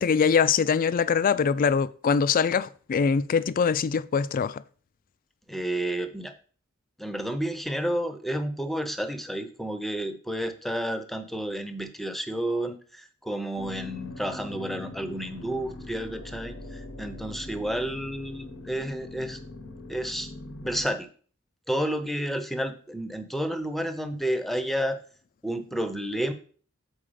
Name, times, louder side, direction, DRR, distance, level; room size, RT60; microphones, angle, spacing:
voice 1, 0.0-4.6, left 6 dB, 40° left, 0.3 m, -23 dB
voice 2, 5.5-6.3 7.0-19.4 19.9-20.3 20.6-21.1 21.7-25.0 25.4-26.3, right 1 dB, ahead, 0.7 m, -31 dB
sound 1, 13.6-20.9, left 2 dB, 85° left, 1.0 m, -41 dB
7.4 x 4.6 x 5.1 m
head